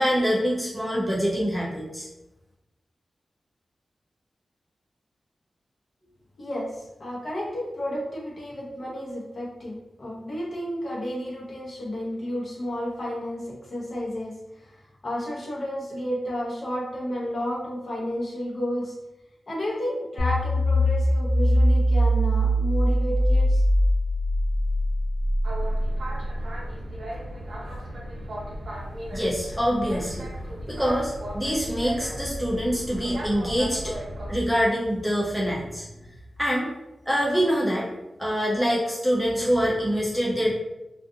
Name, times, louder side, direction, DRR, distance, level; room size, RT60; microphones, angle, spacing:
voice 1, 0.0-2.1 29.1-30.3 30.7-33.9 34.3-35.8 36.4-36.7 37.1-37.9 38.2-40.5, equal, ahead, -4 dB, 0.4 m, -25 dB
voice 2, 6.4-14.8 15.0-18.9 19.5-23.6 30.7-30.8, equal, 45° left, -5 dB, 0.8 m, -32 dB
sound 1, 20.2-26.4, equal, 80° left, 0.4 m, -22 dB
Boat Water vehicle, 25.4-34.4, equal, 65° right, 0.5 m, -35 dB
2.4 x 2.3 x 2.6 m, 0.97 s
wide cardioid pair, 160°, 0 cm